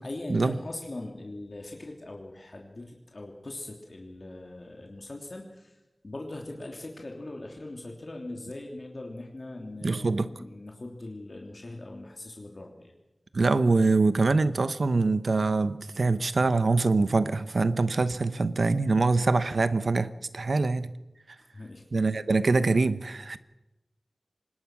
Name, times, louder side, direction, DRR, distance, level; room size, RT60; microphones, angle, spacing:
voice 1, 0.0-5.8 6.0-12.9 21.5-21.8, left 2 dB, 55° left, 3.1 m, -41 dB
voice 2, 9.8-10.3 13.3-20.9 21.9-23.4, right 3 dB, 80° right, 1.0 m, -24 dB
25.0 x 20.0 x 6.2 m
wide cardioid pair, 65°, 0 cm